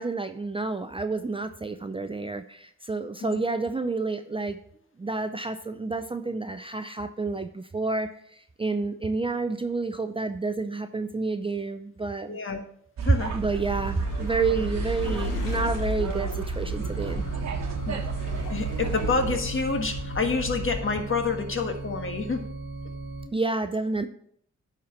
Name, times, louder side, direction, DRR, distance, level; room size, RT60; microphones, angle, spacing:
voice 1, 0.0-4.6 5.0-12.4 13.3-17.2 23.3-24.1, right 3 dB, 15° right, 8 dB, 0.5 m, -29 dB
voice 2, 12.3-12.6 13.0-13.3 17.8-18.0 18.3-22.4, left 4 dB, 40° left, 5 dB, 1.5 m, -28 dB
sound 1, 13.0-19.4, right 7 dB, 60° right, 1.2 m, -32 dB
sound 2, 13.6-20.8, left 4 dB, 80° left, 1.8 m, -35 dB
sound 3, 16.7-23.3, right 3 dB, 35° right, 0.9 m, -38 dB
10.0 x 4.3 x 5.8 m, 0.65 s
cardioid pair, 65°, 31 cm